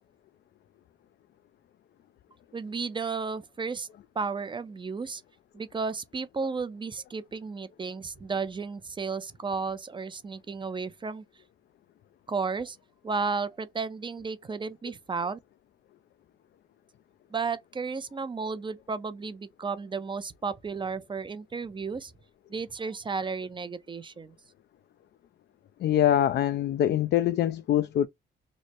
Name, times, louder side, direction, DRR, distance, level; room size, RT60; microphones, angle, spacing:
voice 1, 2.5-3.9 4.2-5.2 5.5-11.2 12.3-12.8 13.0-15.4 17.3-22.1 22.5-24.3, right 4 dB, 25° right, 0.5 m, -33 dB
voice 2, 25.8-28.1, left 11 dB, 60° left, 0.4 m, -24 dB
3.1 x 2.0 x 4.2 m
cardioid pair, 90°, 20 cm